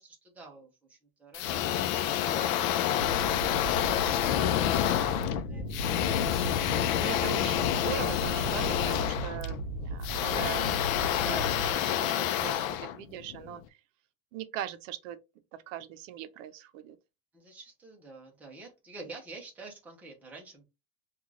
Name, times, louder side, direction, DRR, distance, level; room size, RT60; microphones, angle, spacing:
voice 1, 0.0-2.7 3.3-6.3 17.3-20.6, right 3 dB, 5° right, 0.4 m, -49 dB
sound 1, 1.3-13.5, left 11 dB, 75° left, 0.5 m, -28 dB
sound 2, 3.0-11.7, right 1 dB, 40° right, 0.9 m, -37 dB
voice 2, 6.9-10.8 11.1-13.6 14.3-15.2 15.7-17.0, right 11 dB, 65° right, 0.6 m, -40 dB
3.6 x 2.3 x 3.1 m
supercardioid pair, 170°, 41 cm